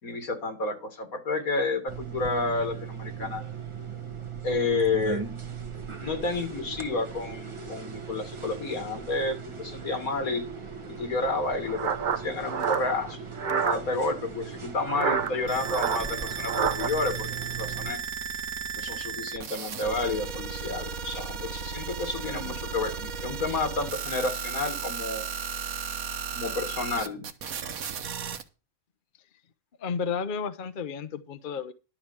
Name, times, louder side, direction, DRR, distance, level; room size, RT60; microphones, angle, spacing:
voice 1, 0.0-3.4 4.4-5.2 6.0-10.4 10.9-13.2 13.6-18.0 18.8-25.3 26.3-27.3, left 3 dB, 80° left, 6 dB, 2.7 m, -30 dB
sound 1, 1.9-17.9, right 6 dB, 25° right, 1.0 m, -39 dB
sound 2, 11.2-13.8 14.8-16.9, right 7 dB, 40° right, 0.8 m, -28 dB
sound 3, 15.5-28.4, right 6 dB, 80° right, 1.5 m, -35 dB
voice 2, 29.8-31.7, left 6 dB, 45° left, 12 dB, 0.8 m, -32 dB
11.5 x 5.0 x 7.2 m, 0.31 s
omnidirectional pair, 1.5 m